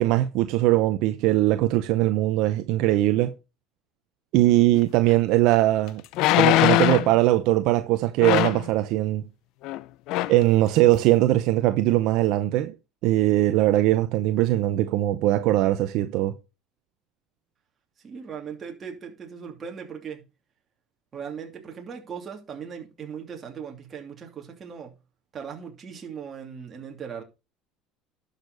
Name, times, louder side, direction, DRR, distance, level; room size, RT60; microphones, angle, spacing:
voice 1, 0.0-3.4 4.3-6.0 6.3-9.3 10.3-12.7 13.0-16.4, right 15 dB, 65° right, 0.8 m, -21 dB
sound 1, 5.1-5.2 6.1-7.1 8.2-8.7 9.6-9.8 10.1-10.4 10.9-11.0, left 16 dB, 65° left, 0.5 m, -21 dB
voice 2, 18.0-20.2 21.1-24.9 25.3-27.2, right 7 dB, 30° right, 2.8 m, -38 dB
11.5 x 6.7 x 4.1 m
cardioid pair, 130°, 0 cm